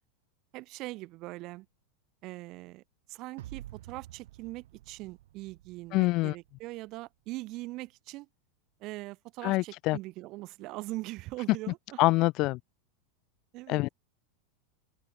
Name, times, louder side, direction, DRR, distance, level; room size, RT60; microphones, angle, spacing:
voice 1, 0.5-1.7 2.2-2.8 3.1-8.3 8.8-12.0 13.5-13.8, right 20 dB, 40° right, 5.5 m, -41 dB
sound 1, 3.4-6.7, right 14 dB, 80° right, 1.7 m, -49 dB
voice 2, 5.9-6.4 9.4-10.0 12.0-12.6 13.7-13.9, left 21 dB, 40° left, 0.3 m, -25 dB
open air
supercardioid pair, 150°, 0 cm